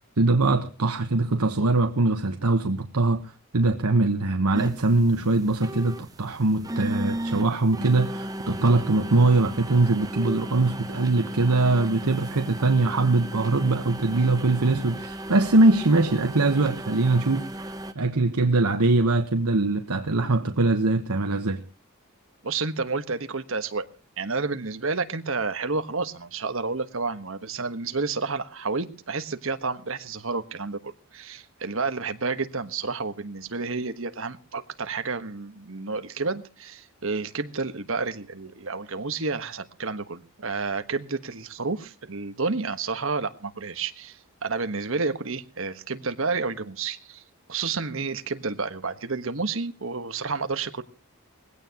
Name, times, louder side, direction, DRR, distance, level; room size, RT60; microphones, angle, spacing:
voice 1, 0.2-3.2 3.5-21.6, right 2 dB, 85° right, 1.2 m, -22 dB
sound 1, 4.5-17.9, right 1 dB, 15° right, 0.8 m, -35 dB
voice 2, 22.4-23.8 24.2-47.2 47.5-50.8, right 4 dB, 65° right, 1.3 m, -30 dB
20.0 x 16.5 x 3.0 m
head